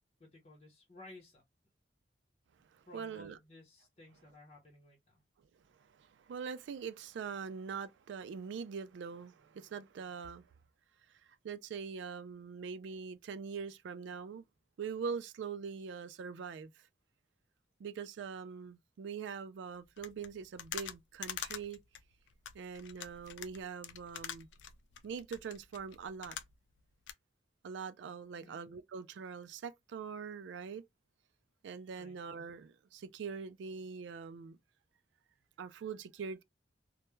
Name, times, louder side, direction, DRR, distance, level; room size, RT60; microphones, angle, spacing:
voice 1, 0.2-1.4 2.9-5.2 28.4-28.6 32.0-32.2, left 2 dB, 35° left, 0.7 m, -56 dB
voice 2, 2.6-3.4 5.7-10.5 11.2-14.4 14.8-16.9 17.8-21.8 22.5-24.5 25.0-26.4 27.6-30.8 31.6-34.6 35.6-36.4, right 6 dB, 85° right, 0.3 m, -43 dB
sound 1, 20.0-26.8 27.1-27.2, left 9 dB, 85° left, 0.3 m, -45 dB
2.2 x 2.1 x 3.0 m
head